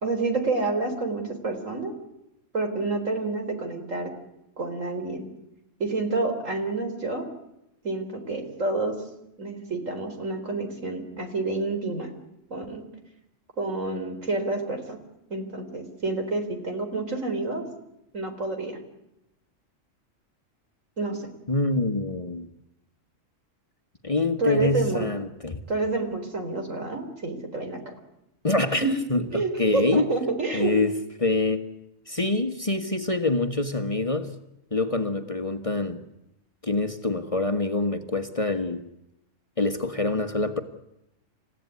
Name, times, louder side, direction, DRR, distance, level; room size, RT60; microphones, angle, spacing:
voice 1, 0.0-1.9 2.5-4.1 4.6-5.3 5.8-7.3 7.8-9.0 9.4-12.1 12.5-12.8 13.6-15.0 15.3-17.6 18.1-18.8 21.0-21.3 24.4-25.1 25.7-27.9 28.8-28.9 29.3-30.7, right 3 dB, 80° right, 4.6 m, -28 dB
voice 2, 21.5-22.5 24.0-25.6 28.4-30.1 30.5-30.9 31.2-31.7 32.1-34.3 34.7-36.0 36.6-38.8 39.6-40.6, left 2 dB, 25° left, 1.4 m, -25 dB
29.0 x 16.0 x 9.7 m
omnidirectional pair, 1.3 m